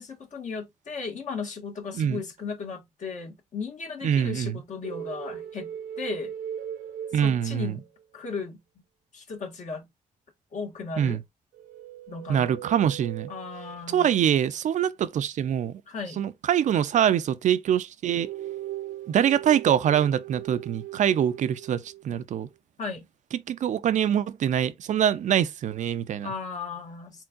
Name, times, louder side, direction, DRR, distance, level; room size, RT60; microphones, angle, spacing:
voice 1, 0.0-6.3 7.1-7.9 8.1-8.6 9.1-9.9 10.5-11.2 12.1-12.6 13.3-14.1 15.9-16.3 22.8-23.1 26.2-27.2, left 4 dB, 60° left, 1.6 m, -36 dB
voice 2, 4.0-4.6 7.1-7.8 11.0-11.2 12.3-13.3 13.9-15.8 16.2-18.3 19.1-22.5 23.5-26.3, right 9 dB, 60° right, 0.4 m, -24 dB
sound 1, 4.8-8.0 11.5-14.1 18.2-22.0, right 11 dB, 85° right, 0.8 m, -39 dB
4.4 x 3.8 x 2.4 m
cardioid pair, 75°, 14 cm